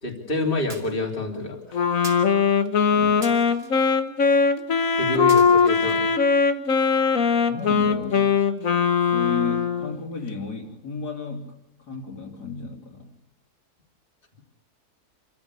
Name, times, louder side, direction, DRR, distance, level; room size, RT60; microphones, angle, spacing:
voice 1, 0.0-1.8 5.0-6.0, left 2 dB, 30° left, 0 dB, 3.5 m, -28 dB
sound 1, 0.7-1.1 2.0-2.3 3.2-3.7 4.8-4.9 5.3-6.0, right 2 dB, 40° right, 3.0 m, -41 dB
Wind instrument woodwind instrument, 1.7-10.0, left 6 dB, 55° left, 1.7 m, -20 dB
voice 2, 2.9-3.3 7.5-8.4 9.1-11.5 11.8-13.1, left 4 dB, 75° left, 0 dB, 3.8 m, -33 dB
27.0 x 14.5 x 8.4 m, 0.80 s
omnidirectional pair, 1.7 m